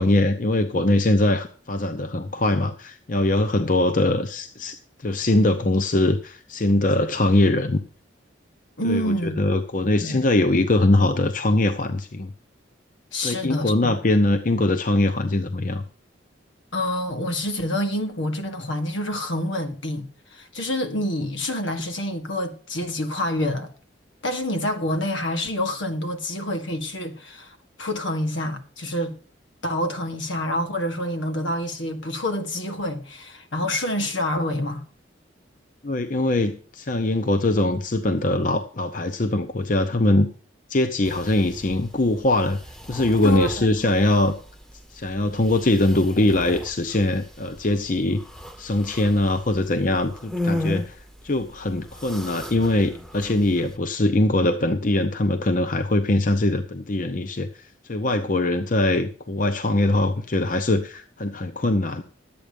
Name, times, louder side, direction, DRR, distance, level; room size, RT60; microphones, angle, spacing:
voice 1, 0.0-7.8 8.8-12.3 13.2-15.8 35.8-40.3 40.7-42.6 42.9-44.3 44.9-48.2 48.6-51.0 51.2-57.5 57.8-62.0, left 2 dB, 45° left, 0.8 m, -22 dB
voice 2, 8.8-9.4 10.0-10.2 13.1-13.9 16.7-23.7 24.2-29.1 29.6-34.8 43.2-43.7, left 1 dB, 80° left, 1.8 m, -27 dB
sound 1, 41.0-53.8, left 1 dB, 5° left, 0.8 m, -36 dB
12.0 x 8.7 x 5.2 m
head